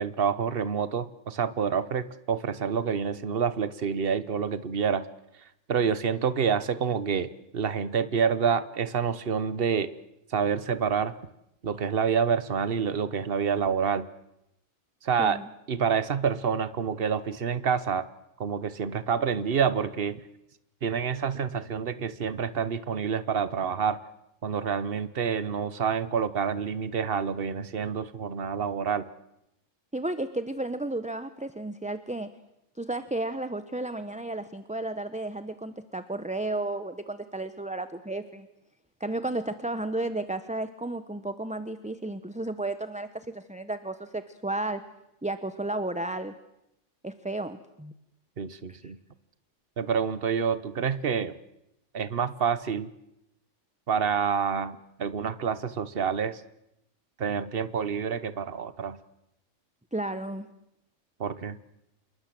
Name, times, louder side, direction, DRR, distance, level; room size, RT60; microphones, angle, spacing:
voice 1, 0.0-5.0 5.7-9.9 10.3-11.1 11.6-14.1 15.0-15.4 15.7-18.1 18.4-20.2 20.8-24.0 24.4-29.0 48.4-49.0 49.8-51.4 51.9-52.9 53.9-56.4 57.2-59.0 61.2-61.6, right 7 dB, 50° right, 14 dB, 1.3 m, -28 dB
voice 2, 29.9-32.3 32.8-38.5 39.0-44.8 45.2-46.3 47.0-47.9 48.8-48.9 59.9-60.5, right 2 dB, 5° right, 11 dB, 0.9 m, -33 dB
27.5 x 21.5 x 7.7 m, 0.83 s
omnidirectional pair, 1.3 m